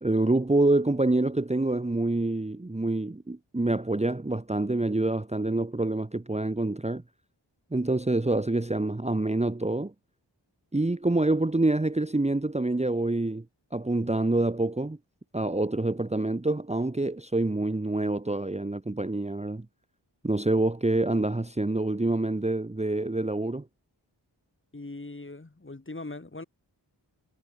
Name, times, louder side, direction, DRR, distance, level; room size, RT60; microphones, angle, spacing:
voice 1, 0.0-7.0 7.7-9.9 10.7-13.4 13.7-15.0 15.3-19.7 20.2-23.7, right 2 dB, 15° right, 1.0 m, -26 dB
voice 2, 24.7-26.4, left 2 dB, 25° left, 2.0 m, -40 dB
wide cardioid pair, 50°, 44 cm